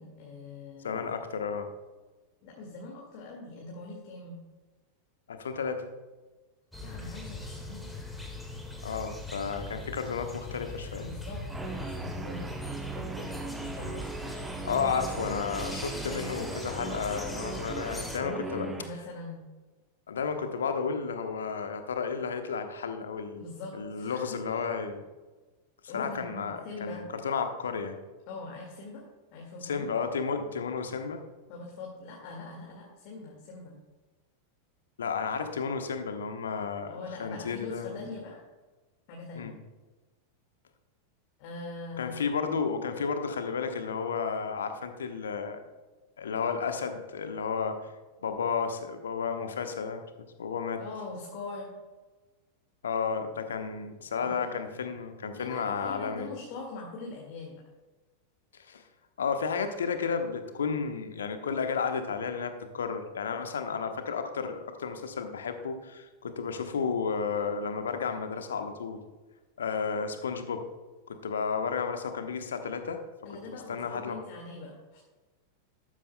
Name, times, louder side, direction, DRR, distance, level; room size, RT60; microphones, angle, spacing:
voice 1, 0.0-1.1 2.4-4.4 6.8-8.0 11.0-14.1 18.2-19.4 23.4-24.5 25.9-27.0 28.3-29.0 29.3-29.9 31.5-33.8 36.8-38.4 39.1-39.6 41.4-42.5 50.8-51.7 54.2-54.5 55.3-57.6 73.2-75.0, left 3 dB, 45° left, -1 dB, 2.0 m, -42 dB
voice 2, 0.8-1.7 5.3-5.9 8.8-11.1 14.6-18.7 20.1-23.4 23.8-25.0 25.9-28.0 29.6-31.2 35.0-38.1 39.3-39.5 42.0-45.6 46.2-47.8 48.2-50.0 50.4-50.8 52.8-56.3 58.5-58.8 59.2-69.0 69.6-70.7 71.1-73.0 73.5-74.2, left 5 dB, 65° left, 7 dB, 1.1 m, -32 dB
sound 1, 6.7-18.2, left 2 dB, 5° left, 1.7 m, -40 dB
Guitar, 11.5-18.9, right 4 dB, 10° right, 0.8 m, -39 dB
12.5 x 12.5 x 2.2 m, 1.2 s
figure-of-eight pair, 90°, 0 cm